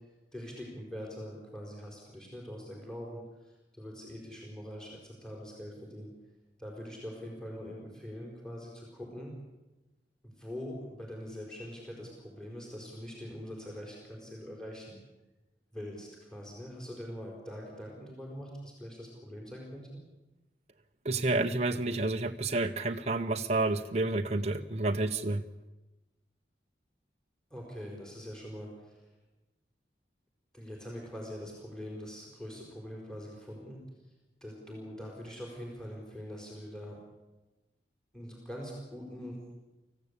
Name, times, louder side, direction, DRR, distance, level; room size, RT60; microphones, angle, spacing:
voice 1, 0.3-6.1 6.6-9.4 10.2-15.0 15.7-20.0 27.5-29.1 30.5-33.8 34.4-37.0 38.1-39.5, equal, 5° left, -1 dB, 4.6 m, -43 dB
voice 2, 21.0-25.4, right 2 dB, 35° right, 4 dB, 0.8 m, -30 dB
25.0 x 15.5 x 8.3 m, 1.1 s
head